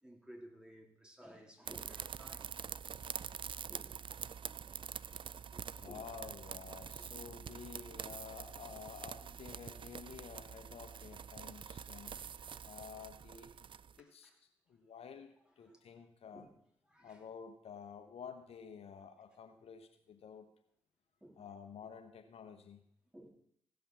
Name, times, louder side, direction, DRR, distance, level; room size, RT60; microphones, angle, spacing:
voice 1, 0.0-2.6 3.7-4.0 5.5-6.1 12.0-12.7 13.5-13.6 14.0-14.4 15.6-15.8 16.3-16.5 16.9-17.2 21.2-21.4 23.1-23.3, equal, 10° right, 3.4 m, -57 dB
sound 1, 1.7-14.0, right 7 dB, 50° right, 0.4 m, -46 dB
voice 2, 5.7-12.3 12.6-13.7 14.0-14.3 14.7-16.5 17.0-20.5 21.4-22.8, left 6 dB, 70° left, 1.2 m, -51 dB
16.0 x 5.6 x 7.0 m
supercardioid pair, 45°, 11 cm